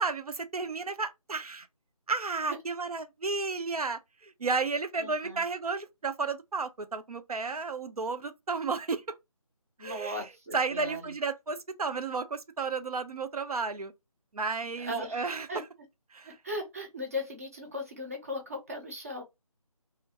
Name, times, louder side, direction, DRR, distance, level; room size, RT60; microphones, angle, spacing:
voice 1, 0.0-1.7 2.1-9.0 9.8-10.2 10.5-13.9 14.3-15.5 16.1-16.4, right 4 dB, 75° right, 0.5 m, -32 dB
voice 2, 5.0-5.4 9.8-11.1 14.8-15.6 16.2-19.2, left 1 dB, 25° right, 0.5 m, -38 dB
2.4 x 2.1 x 2.7 m
figure-of-eight pair, 155°, 19 cm